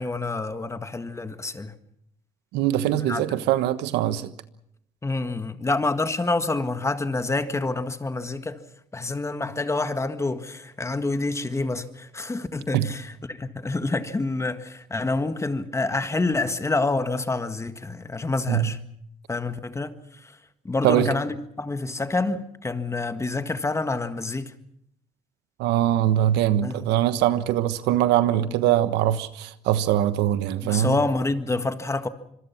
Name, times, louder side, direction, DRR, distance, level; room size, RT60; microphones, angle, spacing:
voice 1, 0.0-1.7 2.9-3.2 5.0-8.6 8.9-18.8 19.3-19.9 20.2-20.3 20.6-24.5 26.6-26.8 30.6-32.1, left 3 dB, 15° left, 1.7 m, -27 dB
voice 2, 2.5-4.3 12.7-12.9 18.5-18.7 20.8-21.1 25.6-31.0, right 12 dB, 90° right, 1.3 m, -22 dB
26.0 x 23.0 x 5.9 m
cardioid pair, 110°, 17 cm